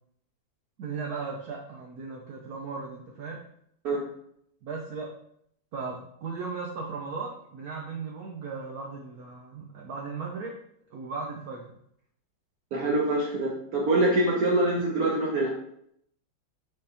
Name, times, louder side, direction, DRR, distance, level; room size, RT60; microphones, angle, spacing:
voice 1, 0.8-3.4 4.6-5.1 5.7-10.6 10.9-11.7, right 4 dB, 90° right, -1 dB, 0.8 m, -37 dB
voice 2, 12.7-15.5, right 2 dB, 65° right, -3 dB, 0.9 m, -25 dB
5.1 x 3.4 x 2.8 m, 0.71 s
omnidirectional pair, 2.3 m